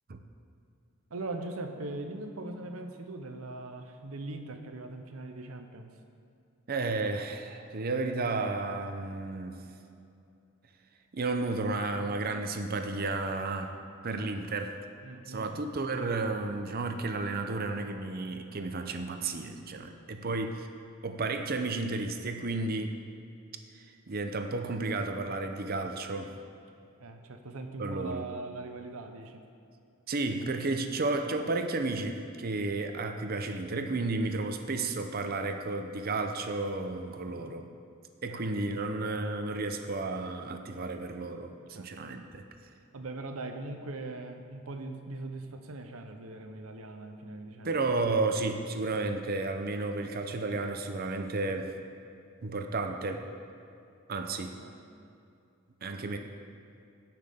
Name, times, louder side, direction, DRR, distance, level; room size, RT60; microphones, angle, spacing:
voice 1, 1.1-5.9 15.0-15.7 20.2-20.4 27.0-29.4 37.3-37.6 38.3-38.4 41.7-41.9 42.9-47.7 54.6-54.8, right 2 dB, 75° right, 6 dB, 0.8 m, -41 dB
voice 2, 6.7-9.6 11.1-13.7 14.0-14.8 15.3-20.7 21.0-23.0 23.7-26.3 27.8-28.2 30.1-37.7 38.2-42.4 47.6-51.8 52.4-53.3 54.1-54.6 55.8-56.2, right 3 dB, 45° right, 6 dB, 0.6 m, -32 dB
16.0 x 5.9 x 3.6 m, 2.6 s
head